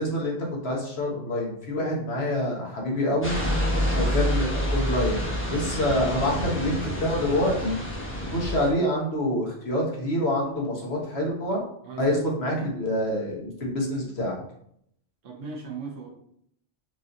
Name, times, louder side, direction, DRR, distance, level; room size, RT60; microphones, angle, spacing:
voice 1, 0.0-3.3 3.9-7.8 8.2-11.6 12.0-14.4, left 1 dB, 55° left, -2 dB, 1.4 m, -26 dB
sound 1, 3.2-8.7, equal, 10° left, 0.9 m, -28 dB
voice 2, 15.2-16.1, right 5 dB, 90° right, 0 dB, 1.4 m, -38 dB
4.8 x 2.7 x 3.8 m, 0.70 s
omnidirectional pair, 1.3 m